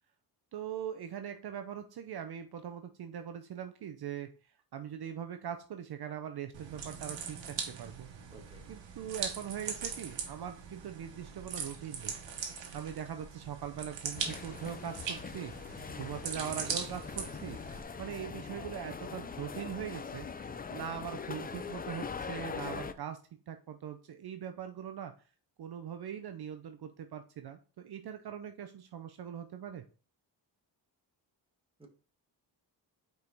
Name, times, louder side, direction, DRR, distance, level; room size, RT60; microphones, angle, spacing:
voice 1, 0.5-4.3 4.7-8.1 8.7-12.1 12.7-15.7 16.0-17.6 18.0-20.3 20.7-23.2 23.5-25.1 25.6-29.8, right 9 dB, 60° right, 7 dB, 0.7 m, -41 dB
sound 1, 6.5-17.8, right 6 dB, 85° right, 1.3 m, -41 dB
voice 2, 8.3-8.7 16.3-16.8 31.8-31.9, right 1 dB, 10° right, 2 dB, 1.5 m, -53 dB
sound 2, 14.1-22.9, left 5 dB, 20° left, 0.4 m, -42 dB
5.5 x 4.6 x 4.0 m, 0.37 s
cardioid pair, 110°, 44 cm